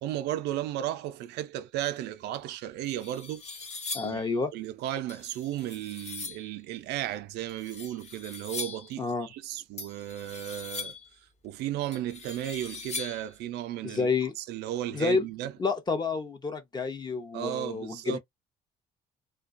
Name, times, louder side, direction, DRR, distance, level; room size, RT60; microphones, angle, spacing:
voice 1, 0.0-3.4 4.0-11.0 11.4-14.1 14.4-15.5 17.3-18.2, right 12 dB, 80° right, 0.4 m, -34 dB
sound 1, 2.4-2.5 2.9-4.3 5.1-6.5 7.5-9.0 9.8-11.1 11.9-13.3, left 4 dB, 40° left, 0.9 m, -40 dB
voice 2, 3.9-4.5 9.0-9.3 13.8-14.3 14.9-15.3 15.6-18.2, left 4 dB, 25° left, 0.6 m, -29 dB
2.3 x 2.2 x 2.4 m
cardioid pair, 110°, 17 cm